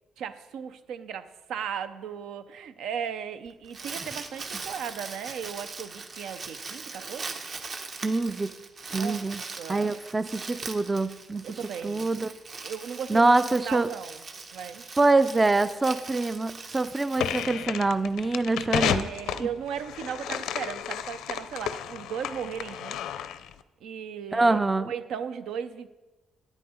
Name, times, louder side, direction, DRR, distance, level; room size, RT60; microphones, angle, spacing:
voice 1, 0.2-7.4 8.9-9.3 9.6-10.0 11.4-12.2 12.6-13.3 13.6-14.2 14.5-14.8 18.7-23.0 23.8-24.6 24.9-25.9, right 8 dB, 80° right, 11 dB, 0.6 m, -36 dB
Crumpling crinkling, 3.5-18.1, right 4 dB, 45° right, 1.1 m, -41 dB
voice 2, 8.0-8.5 8.9-9.4 9.7-11.4 11.8-12.3 13.1-13.9 15.0-19.1 19.4-19.5 24.3-24.9, right 2 dB, 20° right, 14 dB, 0.4 m, -24 dB
sound 1, 17.2-23.5, left 10 dB, 85° left, 0.5 m, -32 dB
9.9 x 9.0 x 4.4 m, 1.1 s
cardioid pair, 90°, 0 cm